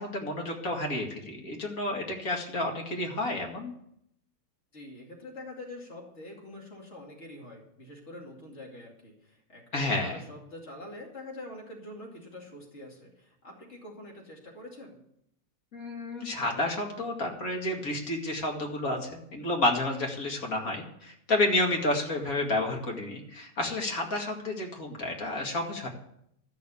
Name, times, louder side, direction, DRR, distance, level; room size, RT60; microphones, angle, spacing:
voice 1, 0.0-3.7 9.7-10.2 15.7-25.9, left 2 dB, 60° left, 1 dB, 2.5 m, -30 dB
voice 2, 4.7-15.0, left 1 dB, 45° left, -1 dB, 3.0 m, -45 dB
13.0 x 6.7 x 8.4 m, 0.75 s
omnidirectional pair, 1.7 m